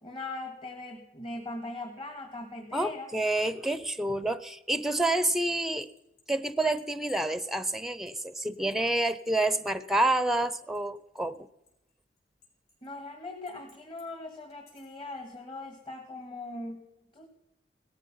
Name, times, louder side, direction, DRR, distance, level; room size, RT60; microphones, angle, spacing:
voice 1, 0.0-3.1 12.8-16.9 17.1-17.3, left 2 dB, 30° left, 4 dB, 1.9 m, -40 dB
voice 2, 2.7-5.9 6.3-11.4, right 2 dB, ahead, 14 dB, 0.6 m, -28 dB
sound 1, 5.1-11.4 11.7-12.9 13.5-14.1 14.5-15.0, left 7 dB, 60° left, 5.6 m, -57 dB
18.0 x 14.0 x 5.6 m, 0.84 s
head